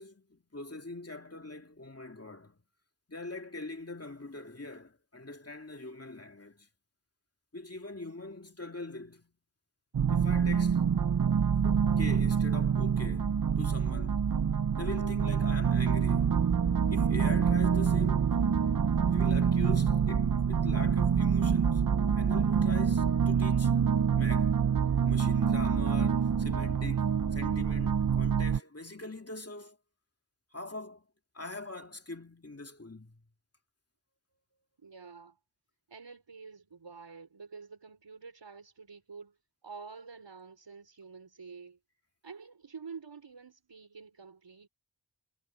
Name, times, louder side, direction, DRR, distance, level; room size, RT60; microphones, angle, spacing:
voice 1, 0.0-2.6 3.1-6.7 7.5-9.3 10.1-11.0 11.5-14.2 14.8-16.4 16.9-18.4 19.1-21.9 22.2-23.7 24.1-24.6 25.0-29.8 30.5-31.1 31.3-33.2, left 2 dB, 35° left, 2.7 m, -43 dB
sound 1, 9.9-28.6, right 7 dB, 50° right, 0.7 m, -26 dB
voice 2, 34.8-35.4 35.9-39.4 39.6-41.8 42.2-44.7, right 5 dB, 85° right, 4.9 m, -48 dB
wide cardioid pair, 60°, 42 cm